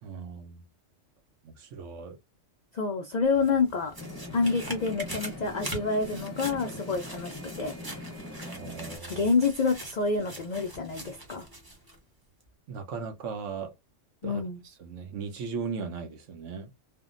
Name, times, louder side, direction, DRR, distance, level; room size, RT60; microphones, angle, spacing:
voice 1, 0.0-0.6 1.4-2.2 8.4-9.3 12.7-13.7 14.2-16.7, right 5 dB, 80° right, 1.0 m, -38 dB
voice 2, 2.7-3.9 4.3-7.7 9.1-11.5 14.2-14.6, left 4 dB, 70° left, 0.4 m, -28 dB
sound 1, 3.2-12.0 12.4-12.5, right 2 dB, 20° right, 0.8 m, -43 dB
sound 2, 4.0-9.0, left 2 dB, 20° left, 0.5 m, -42 dB
3.5 x 2.1 x 2.4 m
omnidirectional pair, 1.3 m